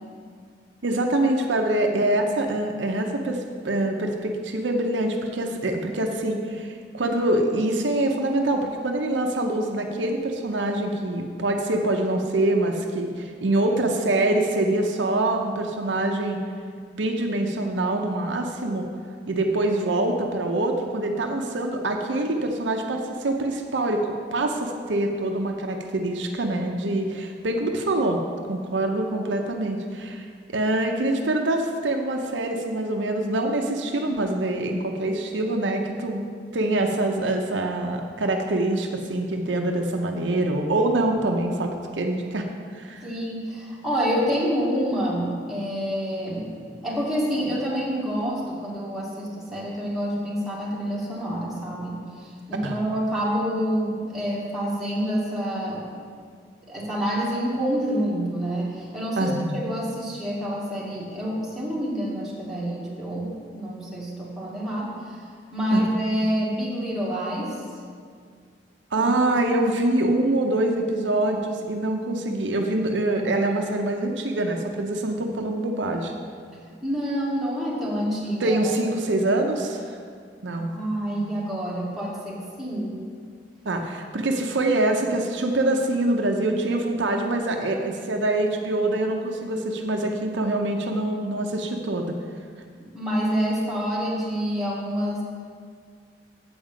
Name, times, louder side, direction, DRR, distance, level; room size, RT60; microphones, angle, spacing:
voice 1, 0.8-16.4 16.9-18.9 19.3-28.2 28.5-30.2 30.5-36.2 36.5-42.4 42.7-43.1 52.6-52.8 59.2-59.6 65.7-65.8 68.9-76.1 78.4-80.0 80.4-80.7 83.7-92.1, right 1 dB, 75° right, 3 dB, 0.7 m, -25 dB
voice 2, 43.0-46.5 46.8-55.8 56.7-67.5 69.0-69.1 76.8-78.7 80.5-82.9 92.8-95.2, equal, ahead, -7 dB, 2.1 m, -27 dB
7.9 x 5.0 x 7.3 m, 2.1 s
head